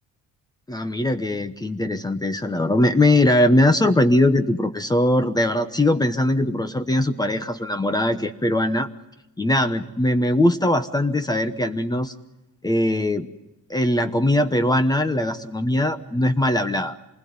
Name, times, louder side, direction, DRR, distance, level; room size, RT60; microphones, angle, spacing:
voice 1, 0.7-8.9 9.4-12.1 12.6-13.3 13.7-16.9, left 1 dB, 10° left, 9 dB, 1.0 m, -21 dB
26.5 x 20.5 x 9.5 m, 0.93 s
cardioid pair, 130°, 32 cm